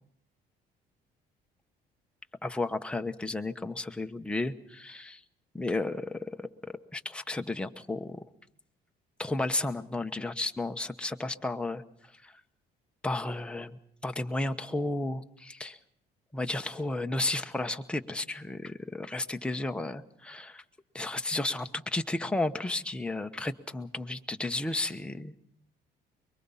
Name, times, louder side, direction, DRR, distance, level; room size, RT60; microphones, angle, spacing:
voice 1, 2.4-5.2 5.5-6.5 6.9-8.2 9.2-11.8 12.1-12.3 13.0-15.8 16.3-20.6 20.9-25.3, left 2 dB, 5° left, 6 dB, 1.0 m, -33 dB
24.0 x 22.5 x 5.7 m, 0.72 s
cardioid pair, 110°, 17 cm